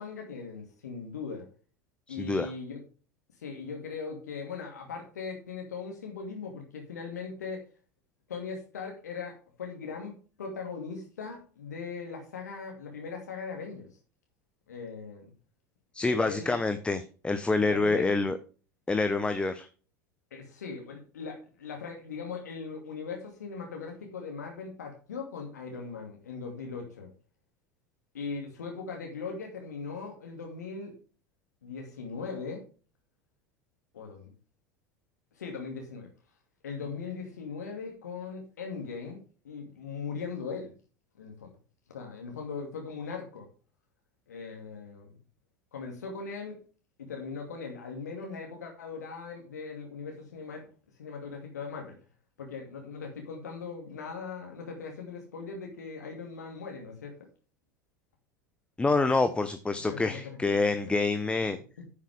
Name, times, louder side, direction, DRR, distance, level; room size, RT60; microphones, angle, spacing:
voice 1, 0.0-1.5 2.1-2.8 3.4-7.7 8.3-13.9 14.7-15.3 16.1-16.6 17.6-18.1 20.3-27.1 28.1-31.0 31.6-32.6 33.9-34.3 35.4-36.1 36.6-40.7 41.2-41.5 41.9-43.5 44.3-45.1 45.7-46.6 47.0-50.7 51.0-52.0 52.4-57.2 59.8-60.5 61.8-61.9, left 5 dB, 70° left, 2 dB, 2.2 m, -39 dB
voice 2, 2.1-2.5 15.9-18.4 18.9-19.7 58.8-61.6, left 3 dB, 10° left, 10 dB, 0.8 m, -27 dB
10.0 x 8.3 x 3.5 m, 0.37 s
figure-of-eight pair, 75°, 9 cm